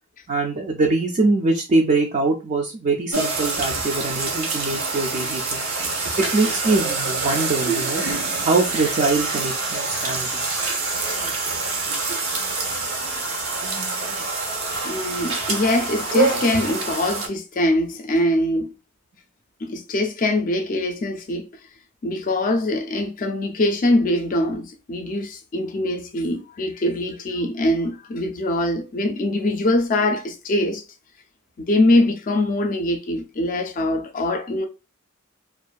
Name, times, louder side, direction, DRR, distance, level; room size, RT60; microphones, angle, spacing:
voice 1, 0.3-5.7 6.2-8.0 8.4-10.4, right 3 dB, 35° right, 0.3 m, -23 dB
sound 1, 3.1-17.3, right 3 dB, 85° right, 0.7 m, -26 dB
voice 2, 14.8-18.7 19.6-21.5 22.0-30.8 31.6-34.7, left 1 dB, 40° left, 0.4 m, -23 dB
2.5 x 2.4 x 2.2 m
head